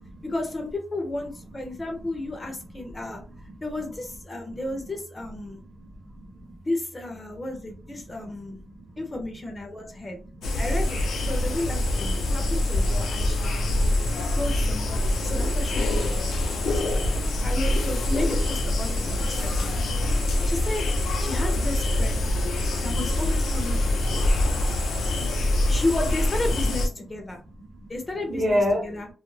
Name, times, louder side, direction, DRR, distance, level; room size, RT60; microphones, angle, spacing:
voice 1, 0.2-3.2 3.6-5.6 6.6-8.6 9.0-10.2 10.6-13.6 14.4-16.1 16.4-16.7 17.4-19.7 20.4-20.8 21.2-22.3 22.8-24.3 25.7-27.4 27.9-29.1, left 2 dB, 20° left, 3 dB, 0.5 m, -33 dB
voice 2, 5.5-6.6 8.4-8.9 10.0-10.2 27.6-27.9 28.3-28.8, left 1 dB, 35° right, 2 dB, 0.8 m, -33 dB
sound 1, 10.4-26.9, left 1 dB, 80° left, 0.5 m, -24 dB
2.3 x 2.0 x 3.1 m, 0.35 s
wide cardioid pair, 155°, 0 cm